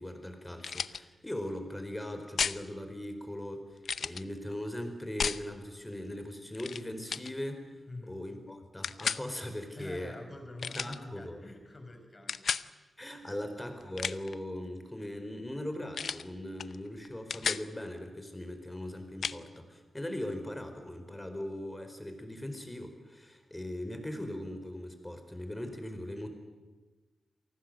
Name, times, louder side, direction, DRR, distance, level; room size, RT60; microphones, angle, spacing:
voice 1, 0.0-3.6 4.0-7.7 8.1-10.2 10.7-11.4 13.0-26.3, left 1 dB, 10° left, 7 dB, 4.5 m, -39 dB
sound 1, 0.6-1.0 2.4-2.6 3.8-4.2 5.2-5.4 6.5-6.8 7.1-7.3 8.8-9.2 10.6-11.0 12.3-12.7 13.8-14.3 15.9-16.3 16.6-16.8 17.0-17.7 19.2-19.4, left 6 dB, 75° left, 0.7 m, -33 dB
voice 2, 7.9-8.2 9.8-12.9 13.3-13.4, left 2 dB, 30° left, 5 dB, 5.2 m, -47 dB
28.0 x 19.5 x 7.8 m, 1.3 s
wide cardioid pair, 90°, 0 cm